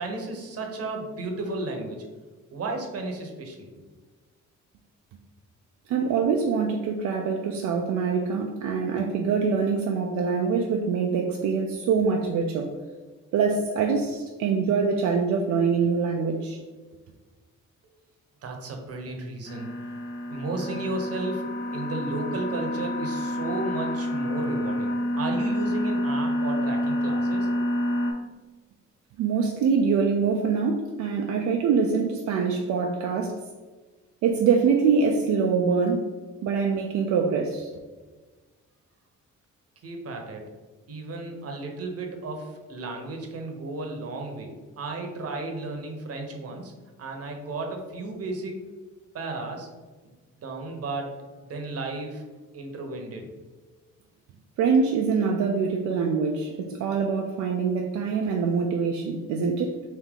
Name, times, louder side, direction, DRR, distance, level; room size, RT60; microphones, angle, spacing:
voice 1, 0.0-2.0 2.5-3.7 18.4-19.7 20.3-21.4 21.7-27.5 39.8-40.4 40.9-46.7 47.0-48.5 49.1-49.7 50.4-51.1 51.5-52.2 52.5-53.3, right 2 dB, 50° right, 2 dB, 0.9 m, -33 dB
voice 2, 5.9-12.7 13.3-16.6 29.2-33.4 34.2-36.1 36.4-37.7 54.6-59.9, right 5 dB, 75° right, 1 dB, 0.5 m, -24 dB
sound 1, 19.5-28.1, left 1 dB, 40° left, 0.7 m, -28 dB
3.5 x 2.7 x 3.6 m, 1.3 s
cardioid pair, 90°, 30 cm